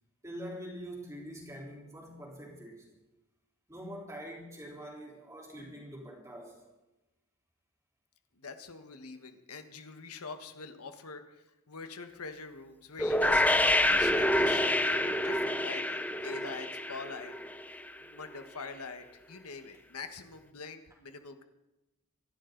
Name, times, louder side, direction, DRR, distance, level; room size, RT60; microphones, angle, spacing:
voice 1, 0.2-2.9 3.7-6.6 16.2-16.3, equal, 15° right, -2 dB, 3.8 m, -44 dB
voice 2, 8.4-17.3 17.7-21.4, left 4 dB, 85° left, 8 dB, 1.4 m, -44 dB
sound 1, 13.0-17.9, left 1 dB, 5° left, 0.5 m, -27 dB
26.5 x 11.5 x 4.0 m, 1.0 s
head